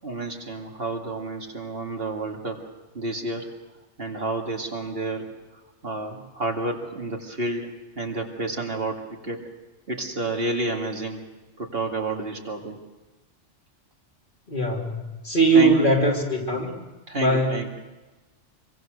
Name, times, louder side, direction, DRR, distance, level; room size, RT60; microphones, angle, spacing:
voice 1, 0.0-3.5 4.0-5.3 5.8-9.4 9.9-11.2 11.6-12.8 15.5-15.7 17.1-17.7, right 2 dB, 55° right, 1 dB, 2.6 m, -30 dB
voice 2, 14.5-16.7 17.1-17.6, right 2 dB, 45° left, -1 dB, 3.3 m, -21 dB
24.5 x 24.0 x 6.6 m, 1.1 s
omnidirectional pair, 1.2 m